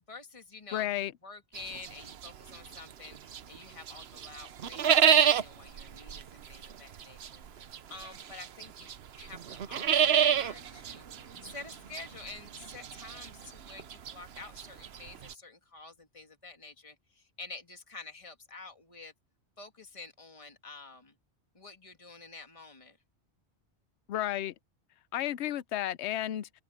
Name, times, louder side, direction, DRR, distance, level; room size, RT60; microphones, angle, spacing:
voice 1, 0.1-11.0 11.4-19.1 19.6-21.2 21.5-23.0, left 3 dB, 30° left, 2.1 m, -49 dB
voice 2, 0.7-1.1 24.1-24.5 25.1-26.5, left 13 dB, 80° left, 0.9 m, -32 dB
sound 1, 1.5-3.6 3.9-15.3, right 8 dB, 65° right, 1.0 m, -29 dB
sound 2, 9.6-12.5, equal, 25° right, 4.0 m, -61 dB
open air
omnidirectional pair, 1.2 m